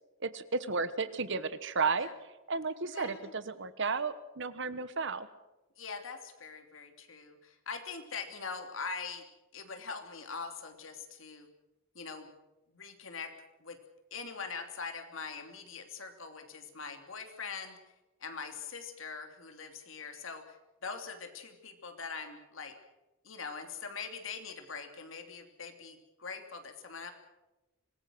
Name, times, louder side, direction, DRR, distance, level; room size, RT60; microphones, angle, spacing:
voice 1, 0.2-2.1 2.5-5.3, right 4 dB, 60° right, 13 dB, 1.4 m, -33 dB
voice 2, 2.9-3.3 5.8-9.2 9.5-11.5 11.9-12.4 12.7-13.3 13.6-13.8 14.1-17.8 18.2-22.7 23.2-27.1, left 5 dB, 70° left, 5 dB, 3.0 m, -42 dB
25.5 x 20.0 x 6.4 m, 1.0 s
head